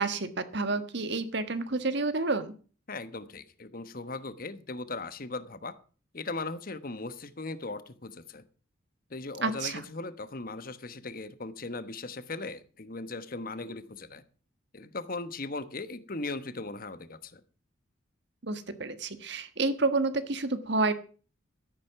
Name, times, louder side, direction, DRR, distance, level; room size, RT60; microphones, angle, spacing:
voice 1, 0.0-2.5 9.4-9.8 18.4-20.9, right 3 dB, 55° right, 12 dB, 1.4 m, -29 dB
voice 2, 2.9-5.7 6.1-8.4 9.1-14.2 14.7-17.4, left 3 dB, 45° left, 13 dB, 1.1 m, -38 dB
13.0 x 10.5 x 5.9 m, 0.40 s
head